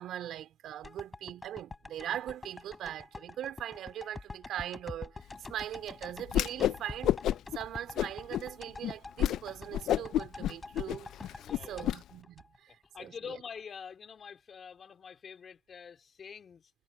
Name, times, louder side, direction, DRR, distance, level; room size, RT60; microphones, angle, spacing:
voice 1, 0.0-7.2 7.6-11.4 11.7-13.4, right 11 dB, 50° right, 3.5 m, -41 dB
sound 1, 0.8-13.0 13.4-13.5, left 3 dB, 15° left, 7.5 m, -47 dB
Whoosh swoosh swish, 6.3-6.8 7.0-7.6 8.0-8.4 8.8-8.9 9.2-9.4 9.7-12.0, left 12 dB, 55° left, 0.6 m, -29 dB
voice 2, 11.4-11.9 12.7-16.7, left 6 dB, 35° left, 3.8 m, -46 dB
supercardioid pair, 90°, 0 cm